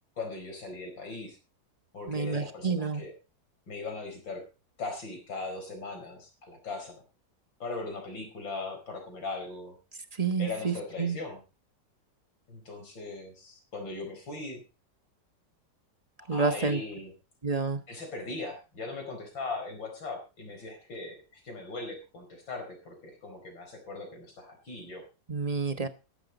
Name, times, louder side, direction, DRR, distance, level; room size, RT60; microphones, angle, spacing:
voice 1, 0.2-1.4 1.9-3.1 3.7-4.4 4.8-7.0 7.6-9.8 10.4-11.4 12.5-14.6 16.2-17.1 17.9-25.0, left 3 dB, 80° left, 4 dB, 5.3 m, -39 dB
voice 2, 2.1-3.0 10.2-11.2 16.3-16.8 17.4-17.8 25.3-25.9, right 4 dB, 25° right, 9 dB, 1.0 m, -29 dB
14.5 x 12.0 x 4.0 m, 0.31 s
omnidirectional pair, 2.0 m